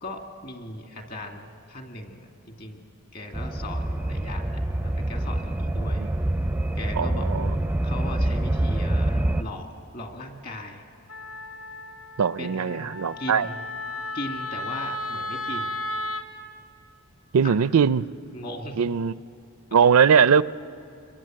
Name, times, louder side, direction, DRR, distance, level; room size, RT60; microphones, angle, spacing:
voice 1, 0.0-2.8 3.1-6.1 6.8-7.3 7.8-9.7 9.9-10.8 12.4-13.6 14.1-15.8 17.4-17.5 18.3-18.8, left 1 dB, 40° left, 3 dB, 2.4 m, -38 dB
sound 1, 3.3-9.4, right 1 dB, 10° right, 0.5 m, -26 dB
voice 2, 7.0-7.5 12.2-13.5 17.3-18.1 18.8-19.1 19.7-20.4, right 6 dB, 75° right, 17 dB, 0.5 m, -20 dB
Wind instrument woodwind instrument, 11.1-16.3, left 1 dB, 75° left, 1.8 m, -34 dB
26.5 x 22.5 x 7.6 m, 2.8 s
head